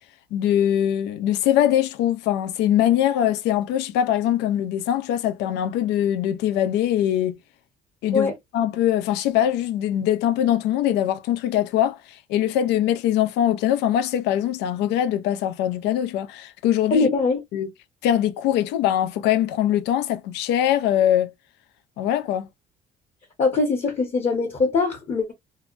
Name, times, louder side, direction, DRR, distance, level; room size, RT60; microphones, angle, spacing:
voice 1, 0.3-7.4 8.0-17.1 17.5-17.7 18.0-21.3 22.0-22.5, left 11 dB, 90° left, 0.5 m, -22 dB
voice 2, 16.9-17.4 23.4-25.3, left 4 dB, 40° left, 0.8 m, -22 dB
2.7 x 2.1 x 2.4 m
cardioid pair, 110°, 17 cm